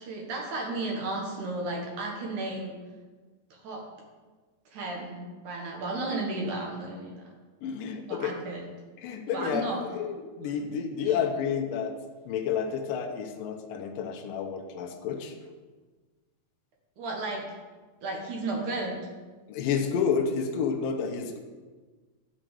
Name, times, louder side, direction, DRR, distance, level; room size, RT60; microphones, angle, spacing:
voice 1, 0.0-2.7 3.5-3.8 4.7-7.3 8.1-8.6 9.3-9.8 10.4-10.5 11.1-11.2 17.0-17.4 18.0-19.0, right 2 dB, 60° right, 1 dB, 2.6 m, -33 dB
voice 2, 7.6-8.3 9.0-9.7 9.9-12.0 12.3-15.4 19.5-21.4, left 7 dB, 75° left, 3 dB, 2.3 m, -30 dB
11.5 x 5.1 x 7.8 m, 1.4 s
omnidirectional pair, 4.7 m